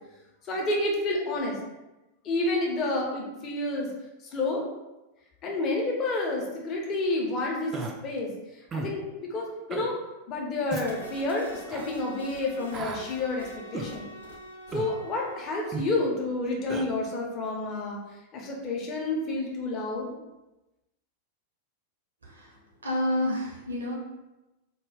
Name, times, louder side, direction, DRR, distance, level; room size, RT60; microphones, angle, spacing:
voice 1, 0.4-1.6 2.2-3.9 4.3-4.6 5.4-8.3 8.7-10.0 10.3-14.1 14.7-18.0 18.3-20.1, left 2 dB, 35° left, -1 dB, 0.6 m, -29 dB
Human voice, 7.7-7.9 8.7-8.9 9.7-9.9 10.7-10.9 11.7-11.9 12.7-13.0 13.7-13.9 14.7-14.9 15.7-15.9 16.7-16.9, right 4 dB, 25° right, 0.3 m, -34 dB
sound 1, 10.7-16.1, equal, 80° left, 0.5 m, -45 dB
voice 2, 22.2-22.5 22.8-23.9, left 1 dB, 75° right, -3 dB, 0.8 m, -29 dB
2.3 x 2.2 x 3.2 m, 1.0 s
figure-of-eight pair, 90°, 0 cm